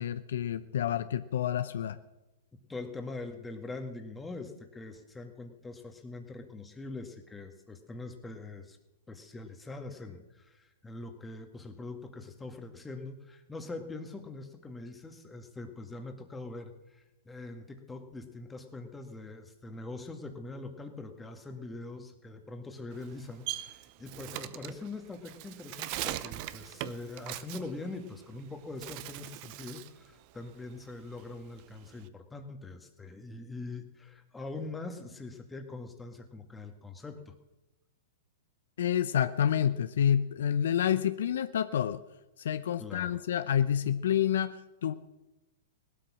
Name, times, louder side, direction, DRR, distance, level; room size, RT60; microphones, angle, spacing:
voice 1, 0.0-2.0 38.8-42.0 42.4-44.9, left 9 dB, 70° left, 12 dB, 0.7 m, -28 dB
voice 2, 2.7-8.8 9.1-37.3 42.8-43.2, left 3 dB, 10° left, 5 dB, 1.8 m, -43 dB
Bird, 22.9-28.4 28.7-30.0 30.3-32.1, right 15 dB, 45° right, 0.8 m, -40 dB
18.0 x 12.5 x 6.2 m, 1.0 s
hypercardioid pair, 115°, 0 cm